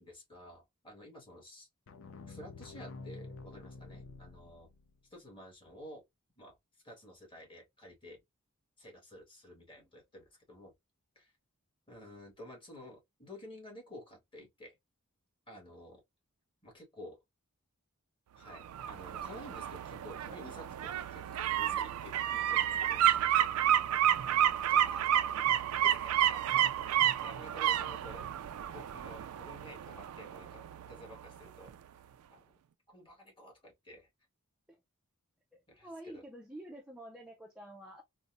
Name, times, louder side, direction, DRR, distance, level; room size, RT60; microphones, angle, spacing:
voice 1, 0.0-1.7 2.3-4.7 5.1-6.0 6.4-6.6 6.8-8.2 8.8-10.7 11.1-11.3 11.9-14.8 15.5-16.0 16.6-17.2 18.4-23.5 24.7-25.2 25.8-26.5 27.2-28.3 28.7-32.0 32.3-32.5 32.9-34.1 35.7-36.2, left 1 dB, 25° left, 1.5 m, -52 dB
sound 1, 1.9-5.0, left 3 dB, 65° left, 0.5 m, -48 dB
sound 2, 18.5-31.3 31.7-31.8, right 11 dB, 80° right, 0.3 m, -30 dB
voice 2, 35.5-38.0, right 1 dB, 5° right, 0.4 m, -50 dB
4.0 x 2.1 x 2.4 m
head